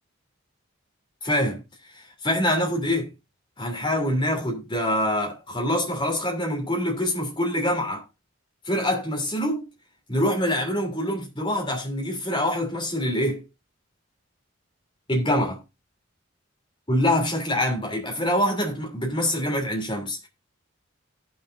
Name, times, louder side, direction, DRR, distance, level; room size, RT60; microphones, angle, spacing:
voice 1, 1.2-1.6 2.2-3.1 3.6-8.0 8.7-9.7 10.1-13.4 15.1-15.6 16.9-20.3, left 1 dB, 25° left, 3.0 m, -25 dB
17.0 x 6.4 x 2.6 m
head